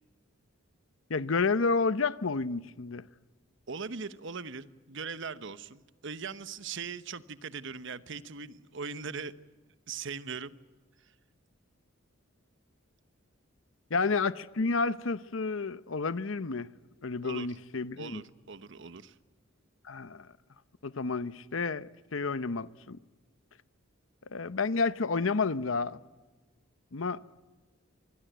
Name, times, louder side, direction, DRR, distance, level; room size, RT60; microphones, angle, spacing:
voice 1, 1.1-3.1 13.9-16.7 17.0-18.2 19.8-20.3 20.8-23.0 24.3-26.0 26.9-27.2, left 4 dB, 70° left, 0.8 m, -30 dB
voice 2, 3.7-9.3 9.9-10.5 11.0-11.1 17.2-17.5 18.0-19.2, right 5 dB, 65° right, 1.0 m, -40 dB
26.0 x 20.5 x 9.3 m
head